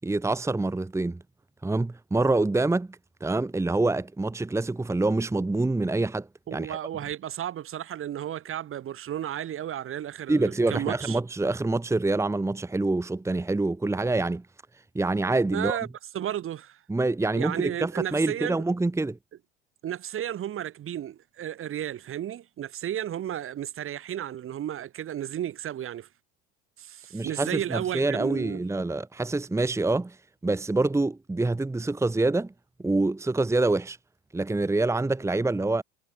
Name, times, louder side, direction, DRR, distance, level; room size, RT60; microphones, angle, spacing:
voice 1, 0.0-1.2 1.6-6.8 10.3-14.4 14.9-15.8 16.9-19.2 27.1-30.2 30.4-32.5 32.8-34.0 34.3-35.8, right 2 dB, 10° right, 1.5 m, -26 dB
voice 2, 6.5-11.2 15.5-15.9 16.1-16.8 17.3-18.6 19.8-26.1 26.8-28.6, right 11 dB, 35° right, 2.4 m, -33 dB
hypercardioid pair, 85°, 35 cm